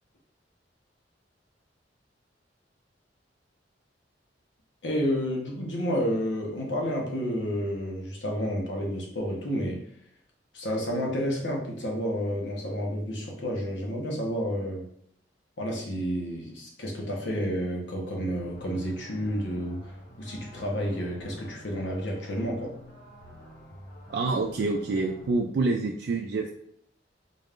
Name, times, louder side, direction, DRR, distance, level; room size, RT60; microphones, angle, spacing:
voice 1, 4.8-9.8 10.5-14.9 15.6-19.9 20.2-22.7, equal, 75° left, -1 dB, 1.1 m, -30 dB
sound 1, 18.3-25.4, equal, 55° left, 1.4 m, -49 dB
voice 2, 24.1-26.5, right 3 dB, 60° right, 2 dB, 0.3 m, -27 dB
4.0 x 2.5 x 3.5 m, 0.67 s
head